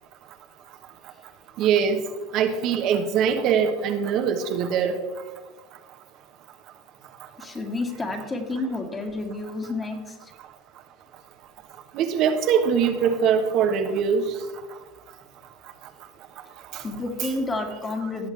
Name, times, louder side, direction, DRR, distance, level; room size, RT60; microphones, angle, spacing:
voice 1, 1.6-2.0 2.3-5.0 11.9-14.3 16.7-16.8, right 7 dB, 55° right, 5 dB, 1.2 m, -22 dB
voice 2, 7.4-10.3 16.8-18.3, left 2 dB, 20° left, 3 dB, 2.2 m, -30 dB
17.5 x 7.2 x 3.4 m, 1.2 s
supercardioid pair, 115°, 0 cm